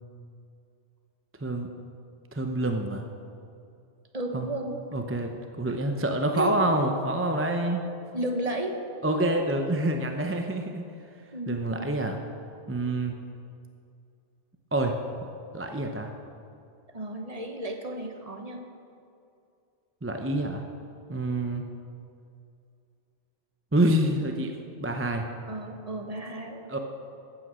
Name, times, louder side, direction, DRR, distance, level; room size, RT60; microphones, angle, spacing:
voice 1, 2.3-3.1 4.3-4.5 4.9-7.9 9.0-10.9 11.5-12.2 12.7-13.1 14.7-15.0 15.5-16.1 20.0-20.6 21.1-21.6 23.7-25.3 26.7-26.8, right 1 dB, 15° right, 4 dB, 0.6 m, -27 dB
voice 2, 4.1-4.7 5.7-5.8 6.3-6.5 8.1-8.8 11.3-11.8 16.9-18.6 25.5-26.8, right 1 dB, 30° right, 3 dB, 1.2 m, -33 dB
14.5 x 9.1 x 6.2 m, 2.5 s
omnidirectional pair, 1.2 m